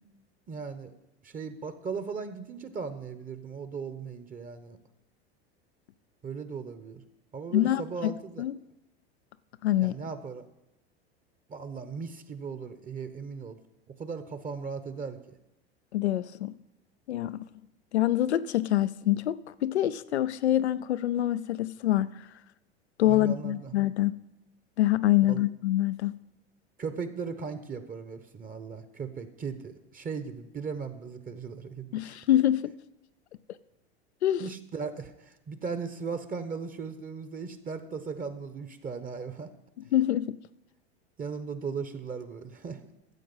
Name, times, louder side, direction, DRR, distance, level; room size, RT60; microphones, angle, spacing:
voice 1, 0.5-0.9 1.2-4.8 6.2-7.0 7.3-8.4 9.8-10.5 11.5-13.6 13.9-15.2 23.1-23.7 25.3-25.4 26.8-32.2 34.4-39.5 41.2-42.8, right 5 dB, 25° right, 1.0 m, -37 dB
voice 2, 7.5-8.1 8.4-8.5 9.6-10.0 15.9-16.5 17.1-17.5 17.9-22.1 23.0-24.1 24.8-26.1 31.9-32.7 34.2-34.5 39.9-40.4, left 13 dB, 90° left, 0.5 m, -25 dB
13.5 x 7.6 x 5.5 m
hypercardioid pair, 90°, 32 cm